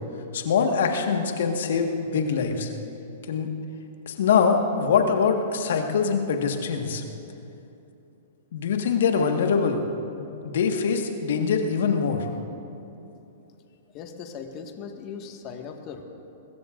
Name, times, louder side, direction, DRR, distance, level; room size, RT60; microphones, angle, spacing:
voice 1, 0.3-2.7 3.3-3.5 4.1-7.0 8.5-9.8 10.2-12.3, left 6 dB, 65° left, 4 dB, 1.6 m, -23 dB
voice 2, 13.9-16.0, left 6 dB, 40° left, 4 dB, 1.7 m, -38 dB
22.5 x 21.0 x 2.6 m, 2.8 s
hypercardioid pair, 110°, 0 cm